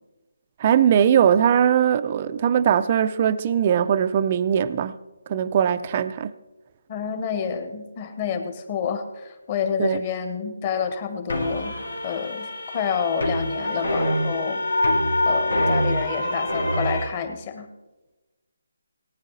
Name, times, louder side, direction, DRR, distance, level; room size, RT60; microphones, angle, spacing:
voice 1, 0.6-4.9 5.3-6.3 9.8-10.0, right 9 dB, 30° right, 0.4 m, -20 dB
voice 2, 6.9-11.8 12.0-14.6 15.2-17.7, left 6 dB, 30° left, 1.4 m, -28 dB
sound 1, 11.3-17.1, left 1 dB, 85° left, 3.0 m, -25 dB
18.5 x 9.7 x 4.0 m
figure-of-eight pair, 160°, 0 cm